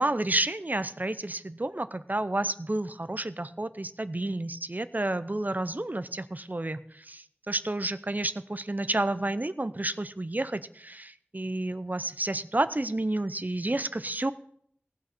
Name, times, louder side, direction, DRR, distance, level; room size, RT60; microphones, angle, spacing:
voice 1, 0.0-14.3, right 2 dB, 40° right, 13 dB, 0.6 m, -30 dB
18.0 x 6.1 x 4.3 m, 0.65 s
wide cardioid pair, 45°, 4 cm